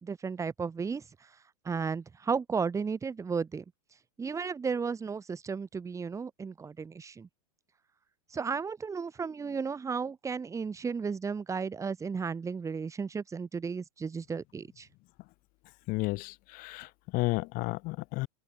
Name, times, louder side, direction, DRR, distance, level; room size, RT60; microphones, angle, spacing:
voice 1, 0.0-1.0 1.7-3.6 4.2-7.3 8.3-14.9, right 5 dB, 15° right, 1.8 m, -34 dB
voice 2, 15.9-18.3, left 23 dB, 45° left, 1.5 m, -32 dB
hypercardioid pair, 120°, 20 cm